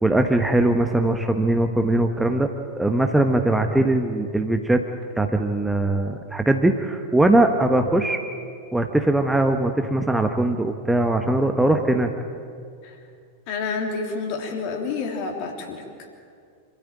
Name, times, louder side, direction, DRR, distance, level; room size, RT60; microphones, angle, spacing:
voice 1, 0.0-2.5 2.8-4.8 5.2-8.2 8.7-12.1, right 1 dB, 5° right, 5 dB, 1.2 m, -20 dB
voice 2, 13.5-15.8, left 4 dB, 45° left, 2 dB, 3.4 m, -28 dB
26.5 x 14.0 x 8.9 m, 2.3 s
figure-of-eight pair, 90°, 0 cm